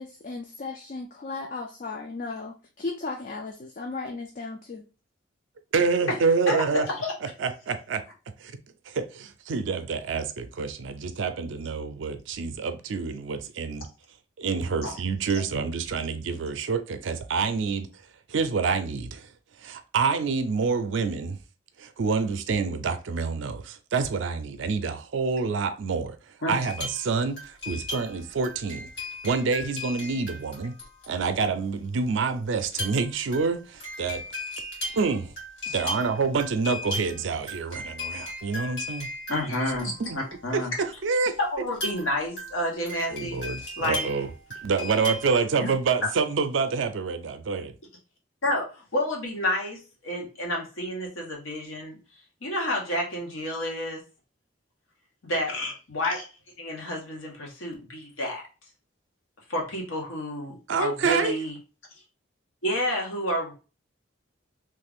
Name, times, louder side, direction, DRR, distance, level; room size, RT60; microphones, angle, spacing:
voice 1, 0.0-4.8, left 3 dB, 40° left, 0.3 m, -36 dB
voice 2, 5.7-6.9 7.2-8.1 8.4-8.5 8.9-13.9 14.4-17.9 18.3-19.3 19.6-21.4 21.8-26.2 26.5-28.9 29.2-30.7 31.1-34.3 34.9-35.3 35.7-39.1 40.0-40.2 40.5-41.4 43.1-44.3 44.6-47.7 60.7-61.4, right 4 dB, 70° right, 0.4 m, -27 dB
voice 3, 6.5-7.1 14.8-14.9 26.4-26.6 35.7-35.8 39.3-40.7 41.4-43.4 43.8-44.1 45.6-45.7 48.4-52.0 52.4-54.0 55.2-56.3 56.6-58.4 59.5-61.5 62.6-63.5, left 1 dB, 90° left, 1.2 m, -29 dB
sound 1, 26.6-31.4 32.6-40.5 41.7-45.5, left 1 dB, 65° left, 1.9 m, -37 dB
3.1 x 2.4 x 3.4 m
head